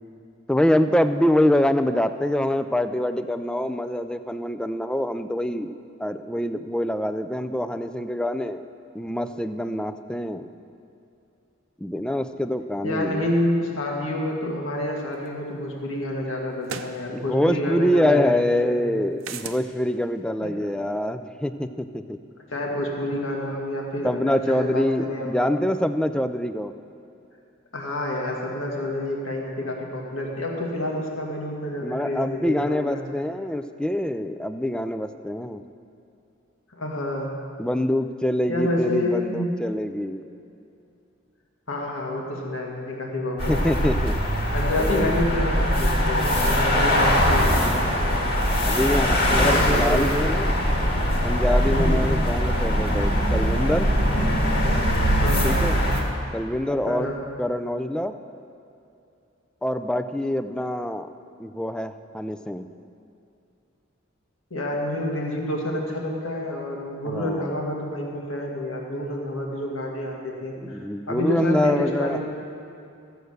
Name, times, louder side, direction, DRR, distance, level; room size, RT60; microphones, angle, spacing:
voice 1, 0.5-5.7 6.0-8.6 8.9-10.5 11.8-13.3 17.1-22.2 24.0-26.7 31.8-35.6 37.6-40.2 43.5-44.1 44.8-45.2 47.4-48.3 48.7-50.5 51.2-53.9 55.4-55.8 56.3-57.1 57.4-58.1 59.6-61.1 61.4-62.7 67.1-67.5 70.6-72.2, left 1 dB, 5° left, 10 dB, 0.3 m, -25 dB
voice 2, 12.8-18.8 20.4-20.7 22.5-25.5 27.7-33.0 36.8-37.3 38.5-39.5 41.7-43.8 44.5-48.3 49.3-50.2 51.7-52.0 55.2-55.6 56.9-57.2 64.5-72.2, left 1 dB, 85° left, 0 dB, 1.9 m, -28 dB
sound 1, 15.3-15.4 16.6-17.0 19.2-19.6, right 6 dB, 80° right, 0.7 m, -34 dB
sound 2, 43.4-56.0, equal, 55° left, 1.9 m, -21 dB
14.5 x 7.9 x 6.5 m, 2.6 s
head